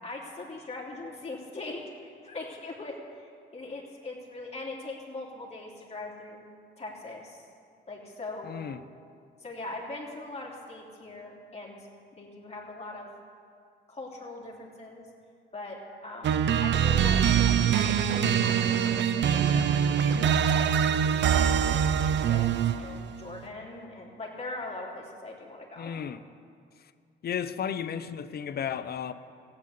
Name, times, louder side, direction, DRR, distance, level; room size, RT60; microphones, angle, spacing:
voice 1, 0.0-6.4 6.8-7.5 7.9-8.6 9.4-11.9 12.1-13.1 13.9-15.1 15.5-17.4 17.7-20.0 20.5-25.9, left 2 dB, 30° left, -2 dB, 3.2 m, -41 dB
voice 2, 8.4-8.8 25.8-26.2 27.2-29.1, left 8 dB, 50° left, 12 dB, 0.7 m, -33 dB
sound 1, 16.2-23.0, right 8 dB, 65° right, 0.7 m, -24 dB
14.5 x 8.8 x 8.4 m, 2.2 s
cardioid pair, 90°, 20 cm